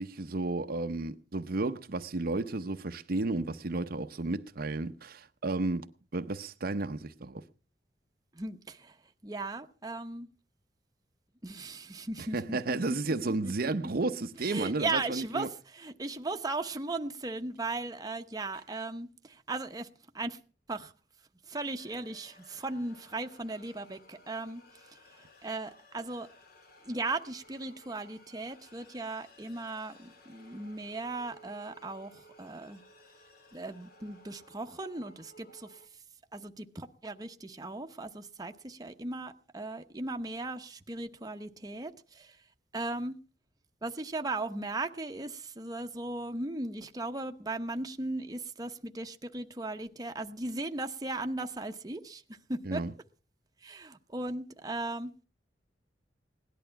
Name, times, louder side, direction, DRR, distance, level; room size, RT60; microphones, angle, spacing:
voice 1, 0.0-7.4 12.3-15.5 52.7-52.9, right 2 dB, 55° right, 0.7 m, -32 dB
voice 2, 8.3-9.0 9.2-10.3 11.4-13.0 13.2-13.5 14.4-19.9 20.1-20.4 20.7-20.9 21.5-26.3 26.8-32.8 33.5-35.8 36.3-42.4 42.7-43.1 43.8-52.8 53.6-55.1, right 2 dB, 20° right, 0.9 m, -37 dB
sound 1, 21.8-35.9, left 1 dB, 60° left, 2.2 m, -58 dB
17.5 x 11.0 x 5.8 m
head